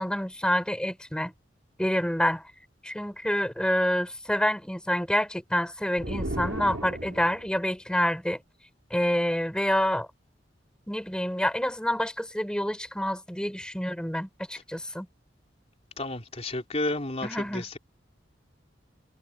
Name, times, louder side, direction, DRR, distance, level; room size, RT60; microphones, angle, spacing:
voice 1, 0.0-1.3 1.8-2.4 2.8-8.4 8.9-10.1 10.9-15.1 17.2-17.6, equal, 5° left, 4.6 m, -27 dB
sound 1, 6.0-7.5, right 1 dB, 80° right, 3.2 m, -34 dB
voice 2, 16.0-17.8, left 2 dB, 35° left, 3.5 m, -31 dB
head